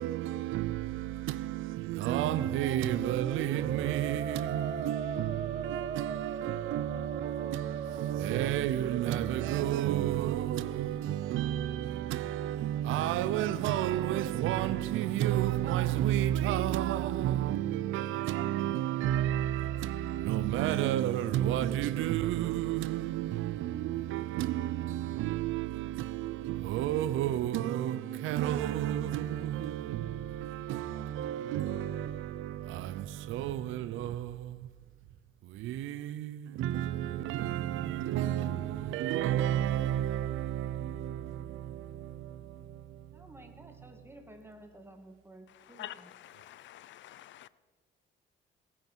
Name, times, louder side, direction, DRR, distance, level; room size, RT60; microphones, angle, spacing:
voice 1, 0.0-34.7 35.4-43.3, right 12 dB, 90° right, 0.6 m, -31 dB
Musical instrument, 2.0-10.0, right 7 dB, 35° right, 0.6 m, -39 dB
voice 2, 43.1-46.1, right 1 dB, 10° right, 2.1 m, -53 dB
voice 3, 46.2-47.5, left 13 dB, 70° left, 0.5 m, -46 dB
18.5 x 9.5 x 5.5 m
cardioid pair, 90°, 20 cm